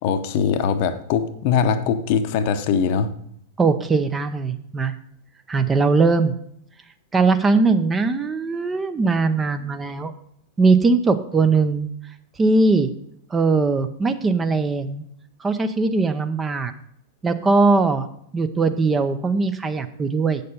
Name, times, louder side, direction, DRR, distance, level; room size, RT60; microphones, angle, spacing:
voice 1, 0.0-3.1, left 7 dB, 45° left, 9 dB, 0.8 m, -21 dB
voice 2, 3.6-4.9 5.5-6.3 7.1-10.1 10.6-11.9 12.4-12.9 13.3-15.0 15.4-16.7 17.2-18.1 18.3-20.4, right 3 dB, 15° right, 9 dB, 0.7 m, -20 dB
8.5 x 6.6 x 5.3 m, 0.71 s
figure-of-eight pair, 95°, 0 cm